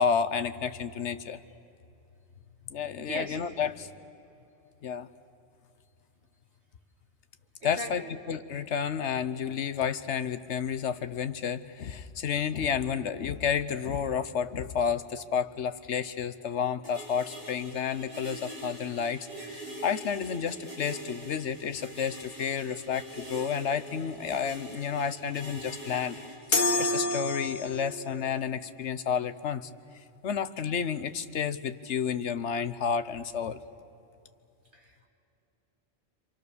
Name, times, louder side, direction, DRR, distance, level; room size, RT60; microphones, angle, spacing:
voice 1, 0.0-1.4 2.7-3.9 4.8-5.1 7.6-8.0 8.3-26.2 26.5-29.7 30.2-33.6, left 7 dB, 80° left, 12 dB, 1.3 m, -31 dB
voice 2, 3.0-3.4 7.6-8.1 28.7-28.8 34.7-35.1, right 1 dB, 70° right, -1 dB, 3.3 m, -39 dB
sound 1, 16.8-26.3, right 1 dB, 50° right, 7.2 m, -43 dB
sound 2, 26.5-28.0, left 2 dB, 45° left, 2.0 m, -27 dB
28.5 x 26.5 x 6.9 m, 2.9 s
omnidirectional pair, 1.2 m